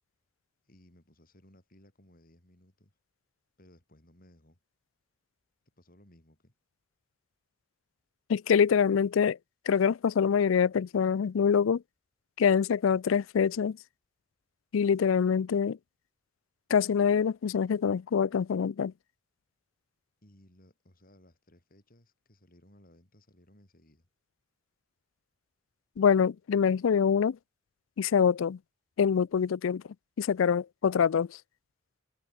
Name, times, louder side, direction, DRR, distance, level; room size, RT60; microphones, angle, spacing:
voice 1, 0.6-3.0 3.6-4.6 5.8-6.5 20.2-24.1, left 1 dB, 45° left, 4.0 m, -60 dB
voice 2, 8.3-9.4 9.7-11.8 12.4-13.8 14.7-15.8 16.7-18.9 26.0-27.4 28.0-28.6 29.0-29.8 30.2-31.4, left 7 dB, 85° left, 0.4 m, -25 dB
head